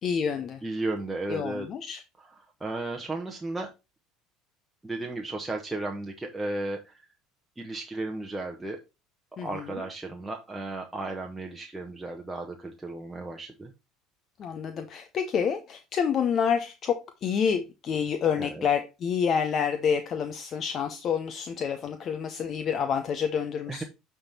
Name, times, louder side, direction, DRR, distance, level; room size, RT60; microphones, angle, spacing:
voice 1, 0.0-0.6 1.3-2.0 9.4-9.8 14.4-23.8, left 7 dB, 40° left, 8 dB, 0.7 m, -28 dB
voice 2, 0.6-1.7 2.6-3.7 4.8-6.9 7.6-8.8 9.4-13.7 18.4-18.7 23.7-23.8, right 2 dB, 10° right, 1 dB, 1.0 m, -34 dB
8.7 x 3.6 x 4.1 m, 0.26 s
supercardioid pair, 115°, 0 cm